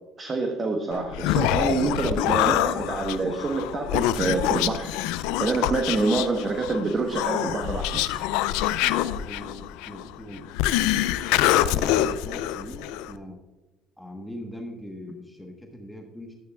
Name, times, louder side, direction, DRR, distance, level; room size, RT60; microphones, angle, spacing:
voice 1, 0.2-5.0 5.4-8.0, right 3 dB, 35° right, 3 dB, 1.1 m, -26 dB
Human voice, 0.9-13.2, left 13 dB, 80° left, 0.3 m, -25 dB
voice 2, 8.6-13.4 14.0-16.3, equal, 5° left, 2 dB, 1.2 m, -41 dB
11.5 x 8.3 x 2.3 m, 1.1 s
supercardioid pair, 75°, 0 cm